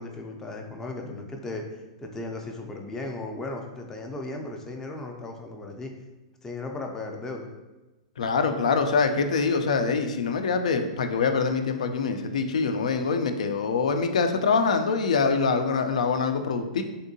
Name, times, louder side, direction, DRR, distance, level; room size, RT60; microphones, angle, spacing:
voice 1, 0.0-5.9 6.4-7.5, left 2 dB, 15° left, 2 dB, 0.4 m, -36 dB
voice 2, 8.2-16.8, left 5 dB, 85° left, 7 dB, 0.4 m, -24 dB
3.5 x 2.6 x 2.6 m, 1.1 s
hypercardioid pair, 140°, 4 cm